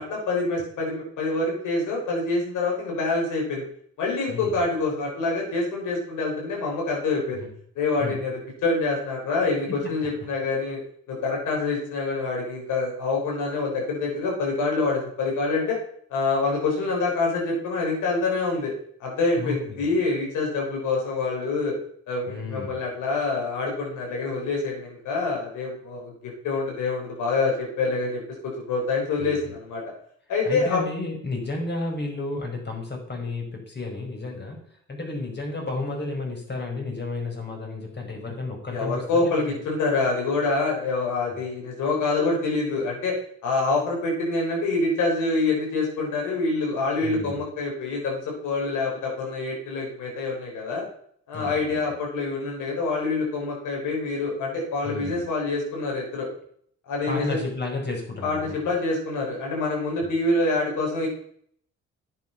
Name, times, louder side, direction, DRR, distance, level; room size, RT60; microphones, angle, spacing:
voice 1, 0.0-3.6 4.0-7.5 7.7-10.8 11.1-15.8 16.1-18.7 19.0-21.7 22.1-29.8 30.3-30.8 38.7-50.8 51.3-56.3 56.9-57.4 58.2-61.1, left 3 dB, 85° left, -2 dB, 6.4 m, -26 dB
voice 2, 4.3-4.6 7.4-7.5 8.0-8.2 9.8-9.9 19.4-19.9 22.3-22.8 29.2-29.5 30.5-39.6 41.3-41.4 47.0-47.4 51.3-51.9 54.8-55.2 57.1-58.7 60.0-60.1, left 2 dB, 35° left, 1 dB, 5.2 m, -32 dB
10.5 x 9.0 x 5.8 m, 0.63 s
cardioid pair, 90°, 30 cm